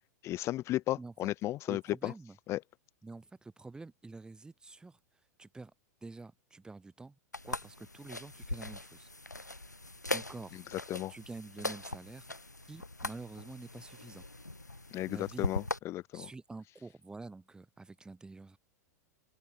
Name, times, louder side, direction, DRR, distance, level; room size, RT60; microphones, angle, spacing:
voice 1, 0.2-2.1 2.5-2.6 10.5-11.1 14.9-16.3, left 15 dB, 30° left, 1.2 m, -35 dB
voice 2, 1.0-1.3 1.7-2.4 3.0-5.0 5.4-5.7 6.0-7.2 7.4-9.1 9.4-9.6 10.1-10.6 11.1-12.3 12.7-14.2 15.1-15.5 16.1-18.6, right 3 dB, 10° right, 6.0 m, -48 dB
sound 1, 7.3-15.8, left 2 dB, 90° left, 0.5 m, -40 dB
open air
figure-of-eight pair, 95°, 9 cm